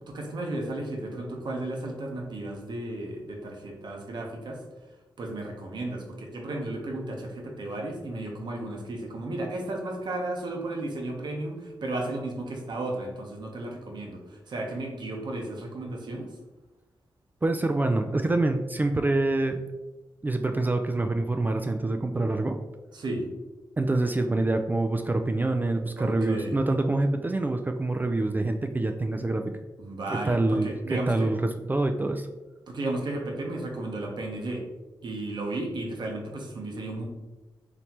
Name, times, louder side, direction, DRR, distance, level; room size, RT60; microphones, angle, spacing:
voice 1, 0.0-4.6 5.2-16.3 22.9-23.3 26.0-26.6 29.8-31.3 32.7-34.6 35.0-37.0, right 2 dB, 65° right, 1 dB, 0.9 m, -34 dB
voice 2, 17.4-19.6 20.2-22.6 23.8-29.5 30.1-32.3, right 2 dB, 20° right, 6 dB, 0.3 m, -26 dB
4.2 x 3.3 x 2.9 m, 1.1 s
cardioid pair, 65°, 8 cm